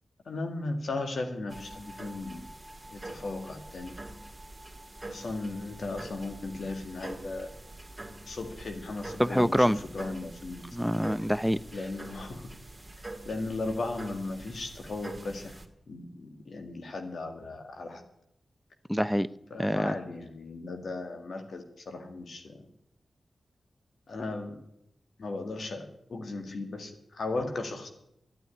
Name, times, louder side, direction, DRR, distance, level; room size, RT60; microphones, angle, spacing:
voice 1, 0.3-2.5 2.9-3.9 5.1-7.5 8.3-10.7 11.7-12.5 13.3-15.6 15.9-18.0 19.5-22.6 24.1-24.6 25.2-27.9, left 2 dB, 70° left, 5 dB, 2.0 m, -36 dB
sound 1, 1.5-15.7, right 2 dB, 20° right, 2.2 m, -45 dB
voice 2, 9.2-9.8 10.7-11.6 18.9-19.3 19.6-19.9, equal, ahead, 17 dB, 0.7 m, -25 dB
12.5 x 9.1 x 9.8 m, 0.79 s
cardioid pair, 40°, 0 cm